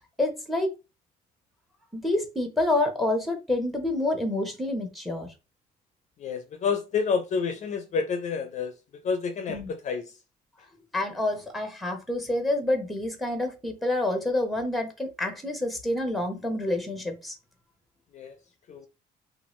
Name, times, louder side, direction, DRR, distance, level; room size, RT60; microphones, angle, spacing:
voice 1, 0.2-0.7 1.9-5.3 9.5-9.7 10.9-17.3, left 1 dB, ahead, 0.8 m, -28 dB
voice 2, 6.2-8.7 9.0-10.0 18.1-18.3 18.7-18.9, left 5 dB, 45° left, 0.4 m, -29 dB
2.7 x 2.4 x 3.0 m
cardioid pair, 110°, 17 cm